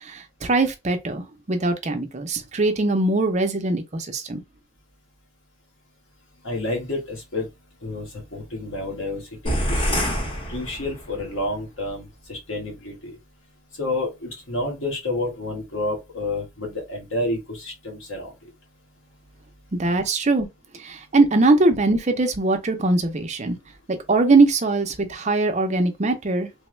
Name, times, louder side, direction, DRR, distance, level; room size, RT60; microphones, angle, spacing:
voice 1, 0.0-4.4 19.7-20.5 20.7-23.6 23.9-26.5, right 2 dB, 35° right, 0.6 m, -21 dB
voice 2, 6.4-7.5 7.8-10.1 10.5-13.1 13.7-18.5, left 2 dB, 90° left, 1.4 m, -30 dB
sound 1, 9.5-11.3, equal, 25° left, 1.0 m, -26 dB
3.4 x 2.2 x 3.1 m
head